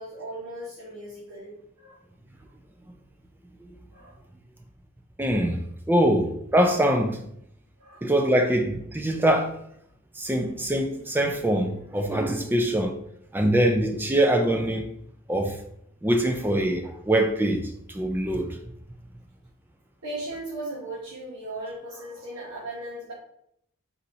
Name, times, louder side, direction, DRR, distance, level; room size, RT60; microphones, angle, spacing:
voice 1, 0.0-2.0 3.9-4.1 7.8-8.1 10.2-10.4 20.0-23.1, right 1 dB, 80° right, 1.3 m, -37 dB
voice 2, 5.2-7.2 8.0-9.5 10.2-13.0 13.3-14.9 15.3-15.6 16.0-18.6, right 1 dB, 10° right, 0.4 m, -23 dB
4.2 x 4.1 x 2.7 m
head